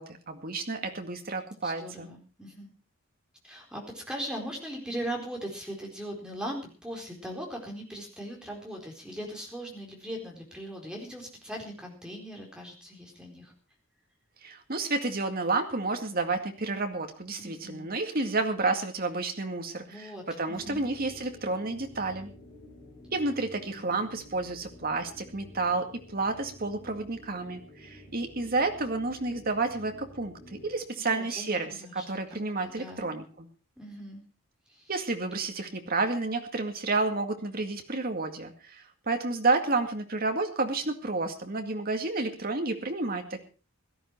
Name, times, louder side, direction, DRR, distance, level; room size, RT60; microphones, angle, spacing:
voice 1, 0.0-2.1 14.4-22.3 23.1-33.5 34.9-43.4, right 3 dB, 45° right, 5 dB, 2.1 m, -30 dB
voice 2, 1.6-2.7 3.4-13.5 17.4-17.9 19.9-20.8 23.5-24.0 31.0-32.0 32.3-33.1 33.8-34.2 34.7-34.9, equal, 5° right, 0 dB, 4.3 m, -40 dB
sound 1, 20.5-30.9, left 1 dB, 25° left, 6.2 m, -50 dB
17.0 x 12.5 x 4.6 m, 0.36 s
head